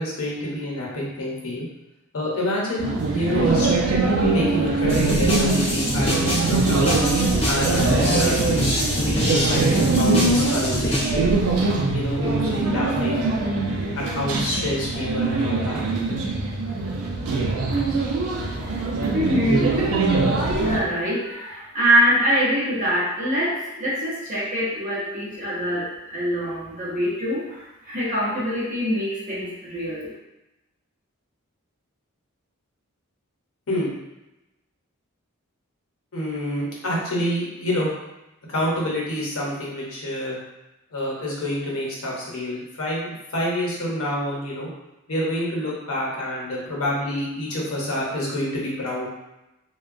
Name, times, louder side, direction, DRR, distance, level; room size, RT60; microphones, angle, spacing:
voice 1, 0.0-1.6 2.1-3.7 4.3-6.9 7.4-8.4 8.9-11.4 11.9-13.3 14.0-15.8 33.7-33.9 36.1-37.9 38.5-40.4 40.9-44.7 45.1-49.1, left 1 dB, 80° left, -4 dB, 0.8 m, -27 dB
sound 1, 2.8-20.8, right 3 dB, 85° right, 0.5 m, -22 dB
sound 2, 4.9-11.1, equal, 25° left, 0.8 m, -25 dB
voice 2, 19.1-19.7 20.3-30.1, equal, 35° right, -7 dB, 0.8 m, -24 dB
2.9 x 2.2 x 2.5 m, 0.97 s
head